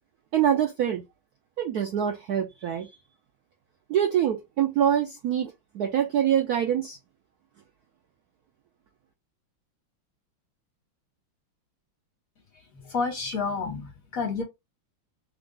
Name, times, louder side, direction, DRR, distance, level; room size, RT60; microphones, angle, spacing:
voice 1, 0.3-1.0 1.6-2.9 3.9-7.0, right 9 dB, 90° right, 0.8 m, -25 dB
voice 2, 12.8-14.4, left 4 dB, 45° left, 1.5 m, -29 dB
3.5 x 2.4 x 3.8 m
omnidirectional pair, 2.3 m